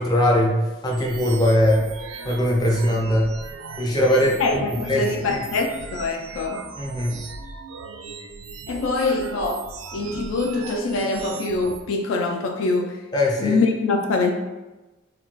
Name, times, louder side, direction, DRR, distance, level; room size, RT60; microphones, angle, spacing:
voice 1, 0.0-1.9 2.2-3.3 3.8-5.4 6.8-7.2 13.1-13.6, left 1 dB, 20° left, -2 dB, 0.5 m, -21 dB
sound 1, 0.9-11.8, right 4 dB, 85° right, 0.3 m, -38 dB
voice 2, 4.4-6.6 8.7-13.0 13.4-14.3, left 3 dB, 75° left, 5 dB, 0.3 m, -24 dB
2.3 x 2.2 x 3.7 m, 1.1 s
head